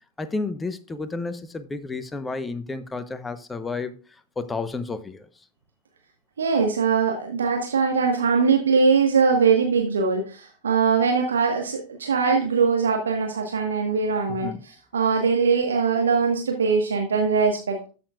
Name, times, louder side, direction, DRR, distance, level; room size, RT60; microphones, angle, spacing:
voice 1, 0.2-4.0 4.4-5.3 14.3-14.6, left 3 dB, 10° left, 0.8 m, -31 dB
voice 2, 6.4-17.8, right 5 dB, 70° right, 1.3 m, -21 dB
12.5 x 6.8 x 2.4 m
figure-of-eight pair, 90°, 0 cm